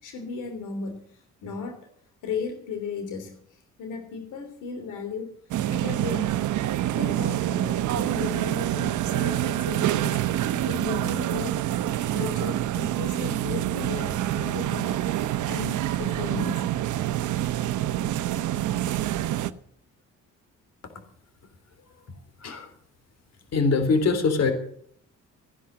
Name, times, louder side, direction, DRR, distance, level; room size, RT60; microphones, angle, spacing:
voice 1, 0.0-1.9 2.2-5.3 5.7-6.4 6.9-10.3 10.6-15.2 15.5-16.9, left 5 dB, 85° left, 6 dB, 3.1 m, -36 dB
sound 1, 5.5-19.5, right 13 dB, 75° right, 0.9 m, -26 dB
voice 2, 22.4-22.7 23.5-24.5, left 4 dB, 55° left, 8 dB, 3.5 m, -22 dB
15.0 x 11.0 x 7.6 m, 0.63 s
cardioid pair, 90°, 30 cm